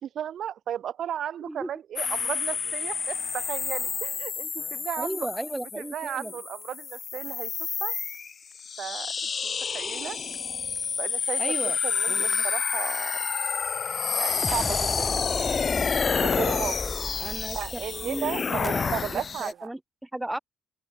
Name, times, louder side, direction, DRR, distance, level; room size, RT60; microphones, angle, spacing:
voice 1, 0.0-5.3 5.8-7.5 7.8-7.9 8.8-9.1 9.4-10.2 11.0-11.4 11.8-13.2 14.1-15.1 15.4-16.9 17.5-19.7, right 10 dB, 65° right, 1.2 m, -35 dB
sound 1, 2.0-19.5, left 6 dB, 40° left, 0.7 m, -29 dB
sound 2, 2.0-3.4 4.5-5.2 5.5-5.7 6.1-7.6 7.9-8.2 8.5-8.8 9.2-9.3 9.7-19.7, right 4 dB, 30° right, 5.7 m, -54 dB
voice 2, 5.0-6.3 11.4-11.8 12.1-12.5 17.2-20.4, right 1 dB, 10° right, 0.9 m, -35 dB
sound 3, 14.3-18.8, left 2 dB, 15° left, 1.7 m, -36 dB
cardioid pair, 90°, 0 cm